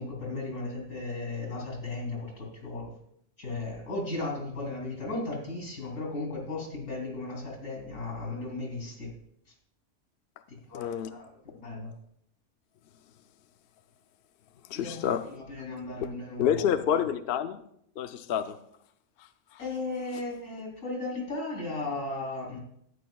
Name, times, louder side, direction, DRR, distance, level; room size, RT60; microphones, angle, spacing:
voice 1, 0.0-2.9 3.4-9.1 10.7-11.9 14.7-15.0 15.5-16.6 19.6-22.6, left 2 dB, 90° left, 3.3 m, -35 dB
voice 2, 10.7-11.1 14.7-15.3 16.4-17.6 18.0-18.6 19.5-19.6, left 8 dB, 60° left, 0.7 m, -28 dB
13.0 x 9.7 x 2.3 m
omnidirectional pair, 1.3 m